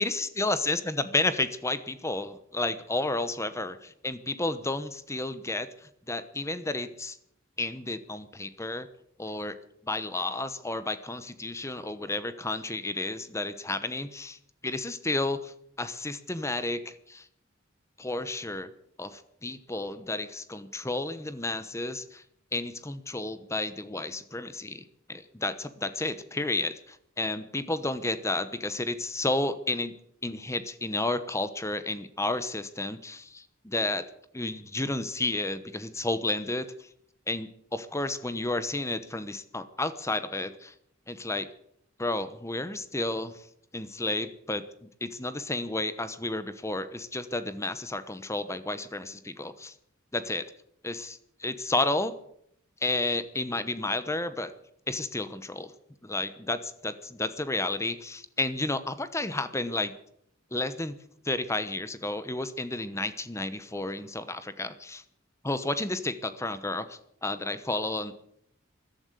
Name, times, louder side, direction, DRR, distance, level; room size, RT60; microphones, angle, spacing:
voice 1, 0.0-7.2 7.6-8.9 9.2-9.6 9.8-14.4 14.6-17.3 18.0-18.7 19.0-22.2 22.5-29.9 30.2-34.1 34.3-36.7 37.3-40.7 41.1-41.5 42.0-43.4 43.7-49.7 50.1-50.5 50.8-52.1 52.8-54.5 54.9-55.7 56.0-59.9 60.5-61.0 61.2-65.0 65.4-68.3, left 2 dB, 15° left, 13 dB, 1.0 m, -32 dB
14.0 x 11.5 x 8.2 m, 0.70 s
head